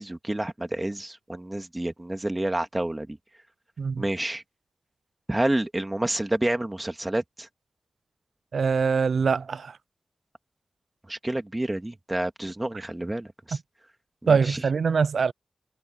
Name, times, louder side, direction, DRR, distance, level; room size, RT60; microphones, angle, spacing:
voice 1, 0.0-3.2 4.0-4.4 5.3-7.5 11.1-13.6 14.2-14.6, right 1 dB, 20° right, 2.1 m, -29 dB
voice 2, 8.5-9.8 14.3-15.3, right 5 dB, 90° right, 0.5 m, -23 dB
wide cardioid pair, 75°, 0 cm